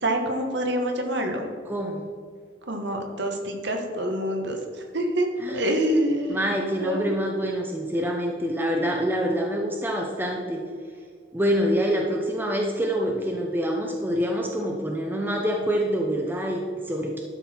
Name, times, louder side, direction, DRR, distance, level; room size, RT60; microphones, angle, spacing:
voice 1, 0.0-1.5 2.7-4.6 4.9-5.3 5.5-6.5 6.8-7.1, right 1 dB, 65° right, 3 dB, 1.4 m, -26 dB
voice 2, 1.7-2.0 5.4-5.7 6.3-10.6 11.3-17.2, equal, 10° right, 0 dB, 0.7 m, -26 dB
11.5 x 6.3 x 4.4 m, 2.1 s
head